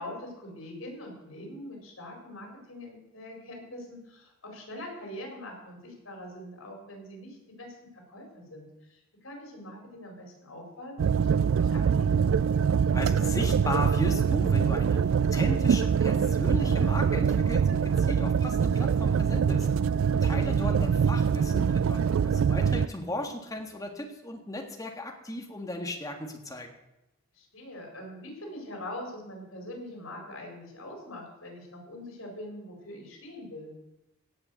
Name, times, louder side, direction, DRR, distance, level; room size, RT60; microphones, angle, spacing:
voice 1, 0.0-12.3 20.5-20.8 27.3-33.7, left 1 dB, 85° left, 1 dB, 4.7 m, -43 dB
sound 1, 11.0-22.9, right 7 dB, 75° right, 0.3 m, -24 dB
voice 2, 12.9-19.7 20.2-26.7, left 1 dB, 15° left, 3 dB, 1.6 m, -36 dB
16.5 x 5.7 x 8.0 m, 0.92 s
head